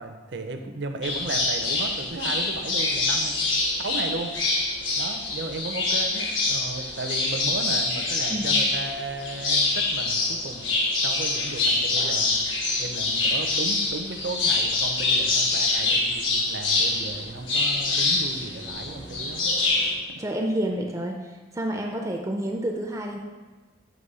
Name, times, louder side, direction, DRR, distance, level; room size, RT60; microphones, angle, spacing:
voice 1, 0.0-4.3 5.0-10.8 11.0-12.3 12.8-19.5 20.1-20.2, right 2 dB, 65° right, 6 dB, 0.6 m, -35 dB
sound 1, 1.0-19.9, left 3 dB, 85° left, 1.3 m, -25 dB
voice 2, 20.2-23.2, right 1 dB, 15° right, 2 dB, 0.4 m, -29 dB
8.0 x 3.1 x 5.4 m, 1.2 s
head